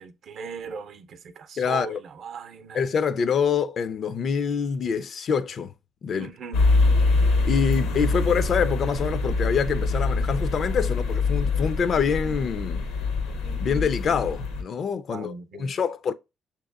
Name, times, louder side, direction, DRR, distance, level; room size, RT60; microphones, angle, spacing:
voice 1, 0.0-2.8 6.1-6.6 15.1-15.7, right 6 dB, 65° right, 0.6 m, -38 dB
voice 2, 1.6-2.0 2.7-5.7 6.0-6.3 7.4-12.8 13.6-16.1, left 6 dB, 55° left, 0.4 m, -25 dB
sound 1, 6.5-14.6, left 3 dB, 85° left, 0.8 m, -24 dB
6.2 x 2.9 x 2.3 m
supercardioid pair, 65°, 0 cm